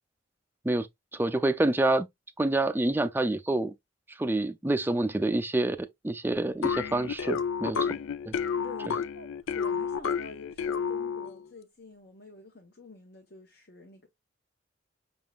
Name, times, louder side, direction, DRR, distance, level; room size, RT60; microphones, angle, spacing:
voice 1, 1.1-2.1 2.4-3.7 4.2-7.8, right 2 dB, 10° right, 0.4 m, -27 dB
sound 1, 6.6-11.4, left 6 dB, 80° left, 0.4 m, -30 dB
voice 2, 7.7-8.1 8.4-14.1, left 3 dB, 55° left, 1.1 m, -47 dB
5.9 x 3.7 x 2.3 m
head